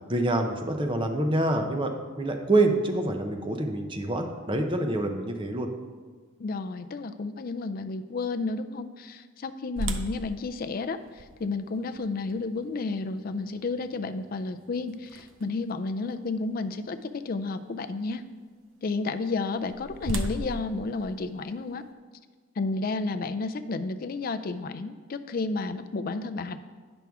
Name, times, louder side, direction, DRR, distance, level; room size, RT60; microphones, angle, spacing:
voice 1, 0.1-1.9 2.2-5.7, right 2 dB, 25° right, 4 dB, 0.6 m, -26 dB
voice 2, 6.4-18.2 18.8-21.8 22.6-26.6, left 3 dB, 45° left, 9 dB, 0.4 m, -31 dB
sound 1, 9.8-15.7 16.3-16.4 17.0-17.2 19.3-21.9, right 1 dB, 70° right, 0.6 m, -38 dB
9.1 x 6.1 x 3.5 m, 1.5 s
head